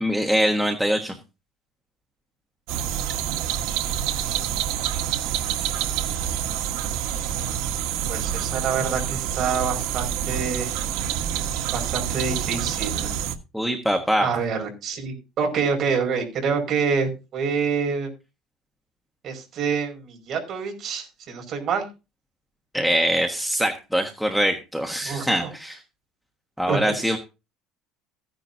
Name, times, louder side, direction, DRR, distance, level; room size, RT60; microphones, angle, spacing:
voice 1, 0.0-1.1 13.5-14.3 22.7-25.8 26.6-27.2, equal, ahead, 3 dB, 1.3 m, -23 dB
sound 1, 2.7-13.4, right 10 dB, 80° right, 1.5 m, -27 dB
voice 2, 8.1-10.8 11.7-13.1 14.2-18.1 19.2-21.9 25.0-25.5 26.7-26.9, right 5 dB, 40° right, 3 dB, 5.5 m, -27 dB
15.5 x 10.5 x 2.8 m, 0.29 s
cardioid pair, 160°, 0 cm